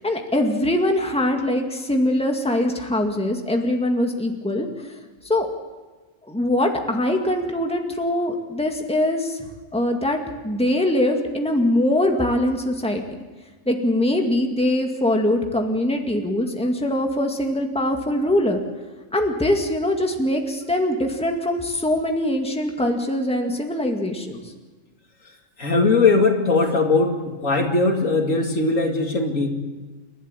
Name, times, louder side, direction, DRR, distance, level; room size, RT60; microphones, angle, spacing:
voice 1, 0.0-4.7 5.2-5.5 6.3-9.4 9.7-13.2 13.7-18.6 19.1-24.4, left 1 dB, 5° left, 3 dB, 2.0 m, -22 dB
voice 2, 25.6-27.1 27.4-29.5, left 3 dB, 75° left, 3 dB, 2.8 m, -19 dB
29.5 x 12.0 x 8.9 m, 1.3 s
omnidirectional pair, 1.4 m